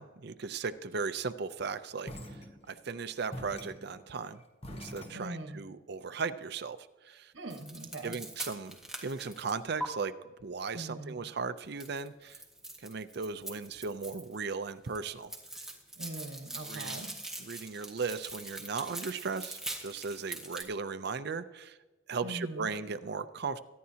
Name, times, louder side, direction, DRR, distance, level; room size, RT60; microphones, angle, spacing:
voice 1, 0.0-4.4 4.7-7.3 8.0-12.4 12.8-15.7 16.6-17.0 17.4-21.8 22.1-23.7, right 5 dB, 60° right, 11 dB, 0.6 m, -37 dB
sound 1, 2.0-2.9 3.3-5.7, equal, 35° left, 1.3 m, -45 dB
voice 2, 5.1-5.6 7.3-8.1 10.7-11.2 16.0-17.1 22.2-22.7, right 1 dB, 75° right, 4 dB, 1.5 m, -41 dB
sound 2, 7.5-9.9 11.8-14.4 14.7-20.6, right 1 dB, 5° right, 1.6 m, -42 dB
23.5 x 10.5 x 2.9 m, 1.2 s
head